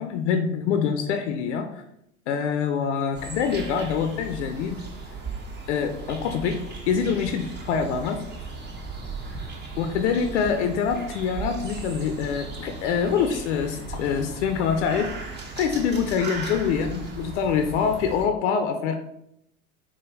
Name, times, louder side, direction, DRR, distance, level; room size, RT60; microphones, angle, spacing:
voice 1, 0.0-1.7 2.3-4.8 5.7-8.2 9.8-19.0, left 6 dB, 65° left, 6 dB, 0.5 m, -25 dB
sound 1, 3.1-18.3, right 4 dB, 25° right, 0.8 m, -37 dB
4.8 x 2.2 x 3.1 m, 0.76 s
hypercardioid pair, 85°, 39 cm